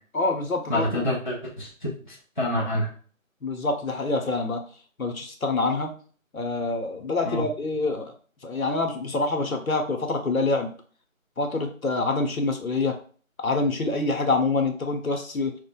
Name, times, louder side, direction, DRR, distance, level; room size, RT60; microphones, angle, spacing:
voice 1, 0.1-1.1 3.4-4.7 5.0-5.9 6.3-8.1 8.4-10.7 11.4-13.0 13.4-15.5, left 3 dB, 80° left, 5 dB, 1.0 m, -26 dB
voice 2, 0.7-2.9 7.2-7.5, left 1 dB, 35° left, -5 dB, 0.7 m, -28 dB
6.2 x 2.2 x 2.3 m, 0.42 s
figure-of-eight pair, 175°, 41 cm